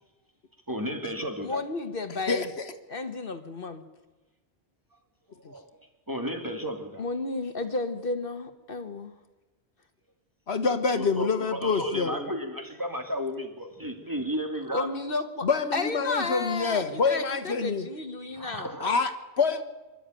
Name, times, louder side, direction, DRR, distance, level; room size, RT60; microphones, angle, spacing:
voice 1, 0.7-1.6 5.4-5.7 6.1-7.0 11.0-14.9 18.3-18.9, equal, 20° right, 4 dB, 2.2 m, -33 dB
voice 2, 1.4-2.5 2.9-3.8 7.0-9.1 14.7-15.5 15.7-18.7, left 3 dB, 55° left, 8 dB, 1.4 m, -32 dB
voice 3, 10.5-12.3 15.4-17.9 18.8-19.6, left 4 dB, 75° left, 9 dB, 1.5 m, -26 dB
26.0 x 12.0 x 9.0 m, 1.2 s
omnidirectional pair, 1.1 m